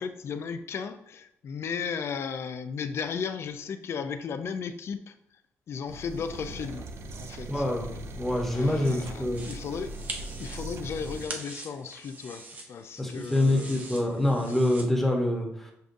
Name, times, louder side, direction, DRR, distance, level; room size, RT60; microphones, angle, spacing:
voice 1, 0.0-5.1 5.7-7.6 8.5-9.9 10.4-12.4 12.7-14.3, left 6 dB, 55° left, 10 dB, 0.4 m, -35 dB
sound 1, 5.9-11.3, right 2 dB, 55° right, 0.4 m, -40 dB
voice 2, 7.5-9.5 13.0-15.7, left 1 dB, 5° left, 0 dB, 0.9 m, -26 dB
sound 2, 9.4-14.8, right 2 dB, 35° right, 0.7 m, -43 dB
6.6 x 2.4 x 2.6 m, 0.78 s
cardioid pair, 100°, 5 cm